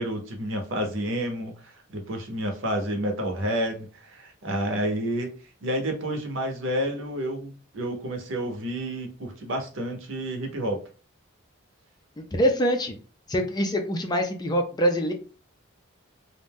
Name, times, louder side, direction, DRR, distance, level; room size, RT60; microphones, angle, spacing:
voice 1, 0.0-5.3 5.6-10.8, equal, 65° right, 3 dB, 0.7 m, -30 dB
voice 2, 12.2-13.0 13.3-15.1, equal, 20° left, 5 dB, 0.4 m, -24 dB
2.5 x 2.2 x 3.4 m, 0.36 s
head